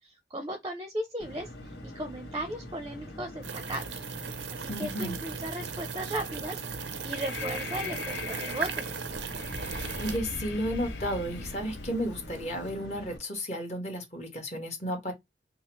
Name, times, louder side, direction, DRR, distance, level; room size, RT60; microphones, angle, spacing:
voice 1, 0.0-1.5 1.8-4.0 4.5-6.6 7.0-8.8, right 1 dB, 20° right, 0.6 m, -36 dB
sound 1, 1.2-13.2, left 1 dB, 75° left, 1.5 m, -45 dB
sound 2, 3.4-10.2, right 6 dB, 90° right, 0.6 m, -37 dB
voice 2, 4.7-5.2 9.6-15.1, equal, 40° left, 1.5 m, -33 dB
Breathing, 6.8-12.7, left 3 dB, 90° left, 0.8 m, -40 dB
5.3 x 2.0 x 3.1 m
head